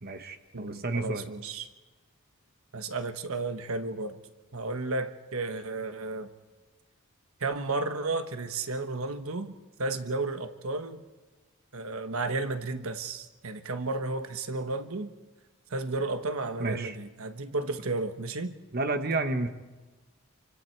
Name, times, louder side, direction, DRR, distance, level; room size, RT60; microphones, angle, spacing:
voice 1, 0.0-1.3 16.6-17.0 18.7-19.5, right 2 dB, 45° right, 8 dB, 1.1 m, -31 dB
voice 2, 0.5-1.7 2.7-4.2 4.5-6.3 7.4-11.0 11.7-15.1 15.7-18.5, right 3 dB, 80° right, 8 dB, 1.2 m, -33 dB
28.0 x 24.5 x 4.6 m, 1.2 s
head